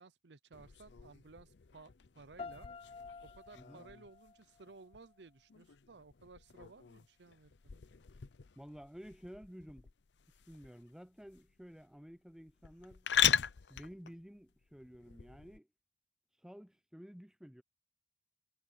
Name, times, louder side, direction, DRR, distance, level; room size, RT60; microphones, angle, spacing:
voice 1, 0.0-2.7 3.4-7.8, right 3 dB, 80° right, 0.8 m, -57 dB
sound 1, 0.5-15.6, left 9 dB, 85° left, 0.6 m, -40 dB
sound 2, 2.4-5.4, left 4 dB, 35° left, 0.5 m, -51 dB
voice 2, 3.5-3.8 8.6-9.9 10.5-13.1 13.7-15.7 16.4-17.6, equal, 5° right, 0.8 m, -52 dB
head